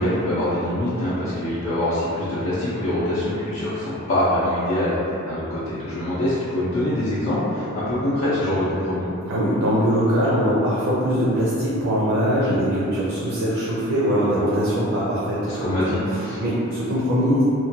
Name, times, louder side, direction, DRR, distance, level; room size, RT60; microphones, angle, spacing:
voice 1, 0.0-5.0 5.2-9.0 15.5-16.0 16.2-16.4, left 1 dB, 70° left, -11 dB, 0.5 m, -24 dB
voice 2, 9.3-17.4, equal, 75° right, -8 dB, 0.5 m, -22 dB
3.0 x 2.2 x 2.7 m, 2.8 s
head